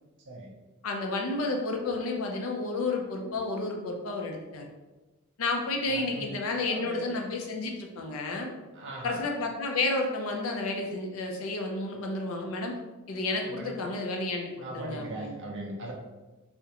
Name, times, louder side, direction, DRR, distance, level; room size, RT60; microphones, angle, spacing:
voice 1, 0.8-4.7 5.4-8.5 9.0-12.7 13.1-15.3, left 2 dB, 90° left, 2 dB, 0.5 m, -31 dB
voice 2, 5.9-6.3 6.6-7.2 8.7-9.2 13.4-13.9 14.6-15.9, right 2 dB, 60° right, 0 dB, 0.4 m, -39 dB
2.4 x 2.1 x 2.8 m, 1.1 s
head